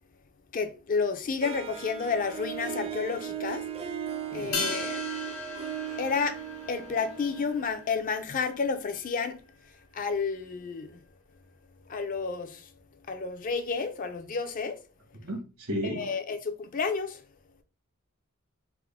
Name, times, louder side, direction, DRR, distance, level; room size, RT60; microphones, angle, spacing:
voice 1, 0.5-3.6 4.3-5.0 6.0-6.4 6.7-9.4 9.9-10.9 11.9-12.7 13.1-14.8 15.8-17.2, left 5 dB, 40° left, 0.4 m, -31 dB
Harp, 1.4-8.3, right 9 dB, 30° right, 0.4 m, -38 dB
voice 2, 4.3-4.9 15.2-16.2, equal, 85° right, 1.1 m, -35 dB
sound 1, 4.5-9.2 9.5-9.6, left 4 dB, 85° left, 0.9 m, -38 dB
3.5 x 2.0 x 3.5 m
head